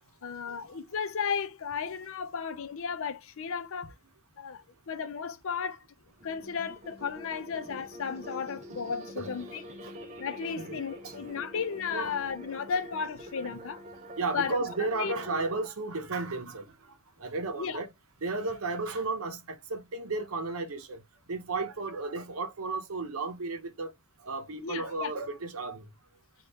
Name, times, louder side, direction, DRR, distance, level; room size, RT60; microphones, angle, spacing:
voice 1, 0.2-3.9 4.4-5.8 6.2-9.6 10.2-13.8 14.3-14.6 15.0-15.1 17.6-17.8 24.6-25.1, left 6 dB, 65° left, 0.5 m, -34 dB
sound 1, 6.1-15.7, equal, 35° right, 0.6 m, -45 dB
voice 2, 14.2-16.7 17.2-17.9 18.2-21.0 21.3-23.9 24.3-25.8, right 3 dB, 70° right, 0.8 m, -33 dB
3.5 x 2.4 x 4.1 m
head